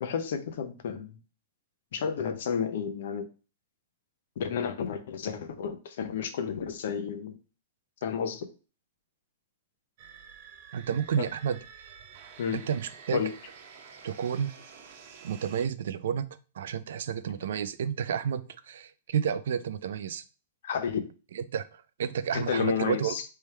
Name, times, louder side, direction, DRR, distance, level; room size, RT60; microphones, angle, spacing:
voice 1, 0.0-1.2 1.9-3.3 4.4-7.4 8.0-8.5 11.2-11.3 12.4-12.6 13.1-13.3 20.6-21.0 22.3-23.2, left 7 dB, 70° left, 9 dB, 0.7 m, -31 dB
sound 1, 10.0-15.7, right 6 dB, 55° right, 0.9 m, -50 dB
voice 2, 10.7-11.6 12.5-13.2 14.0-14.5 15.2-16.3 16.5-20.2 21.3-23.1, right 8 dB, 75° right, 14 dB, 0.4 m, -31 dB
3.4 x 3.4 x 4.3 m, 0.34 s
hypercardioid pair, 145°, 0 cm